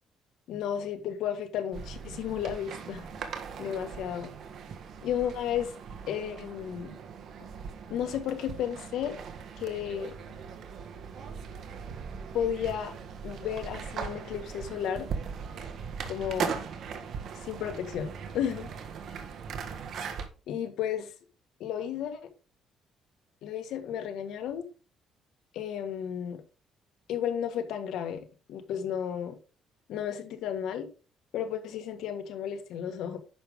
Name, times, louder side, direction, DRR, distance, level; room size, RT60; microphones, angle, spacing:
voice 1, 0.5-3.1 3.6-4.3 5.0-5.7 6.1-7.0 7.9-9.2 9.6-10.1 12.3-12.9 13.2-15.1 16.1-16.6 17.3-18.7 20.5-21.1 21.6-22.2 23.4-24.7 25.5-26.4 27.1-29.4 29.9-30.9 31.3-33.2, left 9 dB, 80° left, 1.6 m, -33 dB
sound 1, 1.7-20.3, right 6 dB, 60° right, 1.6 m, -39 dB
10.0 x 6.5 x 3.6 m
cardioid pair, 130°, 0 cm